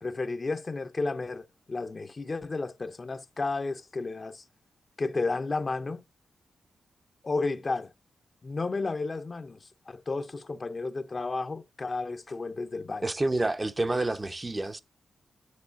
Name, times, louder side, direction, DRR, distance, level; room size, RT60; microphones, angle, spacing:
voice 1, 0.0-4.4 5.0-6.0 7.2-7.9 8.4-13.1, left 3 dB, 40° left, 0.6 m, -32 dB
voice 2, 13.0-14.8, right 2 dB, 25° right, 0.5 m, -28 dB
9.4 x 6.3 x 2.5 m
cardioid pair, 70°, 0 cm